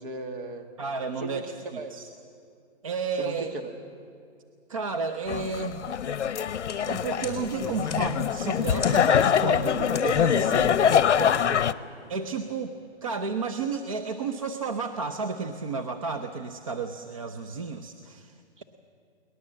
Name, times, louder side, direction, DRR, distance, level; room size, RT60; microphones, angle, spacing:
voice 1, 0.0-0.7 1.2-2.0 3.1-3.7 10.8-11.6 18.6-18.7, right 2 dB, 45° right, 5 dB, 2.1 m, -37 dB
voice 2, 0.8-2.1 2.8-3.5 4.7-5.9 6.8-10.8 11.1-11.3 12.1-18.3, right 5 dB, 30° right, 6 dB, 0.6 m, -32 dB
sound 1, 5.3-11.7, left 8 dB, 75° left, 0.8 m, -24 dB
sound 2, 6.6-12.3, left 6 dB, 25° left, 3.5 m, -45 dB
22.0 x 19.5 x 7.5 m, 2.4 s
hypercardioid pair, 170°, 35 cm